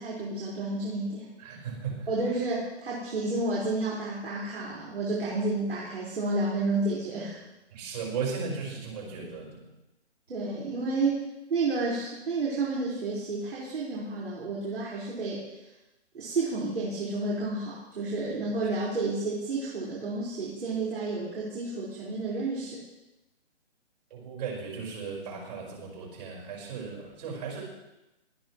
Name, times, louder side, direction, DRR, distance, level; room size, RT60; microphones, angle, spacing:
voice 1, 0.0-1.3 2.1-7.4 10.3-15.4 16.1-22.8, right 3 dB, 65° right, -6 dB, 5.1 m, -31 dB
voice 2, 1.4-2.1 7.7-9.7 24.1-27.6, right 5 dB, 40° right, -2 dB, 5.0 m, -36 dB
19.5 x 13.0 x 3.2 m, 0.97 s
hypercardioid pair, 160°, 34 cm